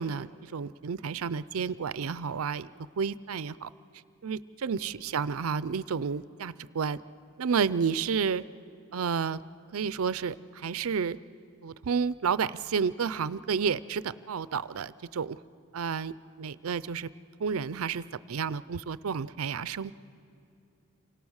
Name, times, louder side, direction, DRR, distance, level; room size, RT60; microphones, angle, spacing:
voice 1, 0.0-2.7 3.0-3.7 4.2-7.0 7.4-8.4 8.9-9.4 9.7-11.2 11.6-15.4 15.7-16.1 16.4-17.1 17.4-19.9, right 6 dB, 85° right, 17 dB, 0.5 m, -31 dB
28.5 x 25.0 x 6.4 m, 2.5 s
head